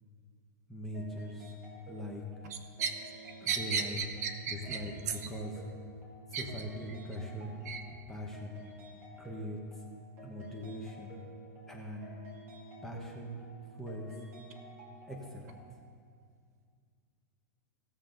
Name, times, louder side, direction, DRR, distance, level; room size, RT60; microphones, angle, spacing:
voice 1, 0.7-1.6 1.9-2.2 3.4-4.0 4.5-5.6 6.3-7.5 8.1-8.6 9.2-9.8 10.2-11.2 11.7-12.1 12.8-13.4 13.7-14.1 15.1-15.5, equal, 5° left, -1 dB, 0.9 m, -41 dB
sound 1, 0.9-15.7, right 1 dB, 25° right, 2.4 m, -52 dB
voice 2, 3.5-4.8 6.3-6.4 7.7-7.8, right 6 dB, 60° right, 6 dB, 1.1 m, -34 dB
17.0 x 7.3 x 3.9 m, 2.1 s
supercardioid pair, 170°, 10 cm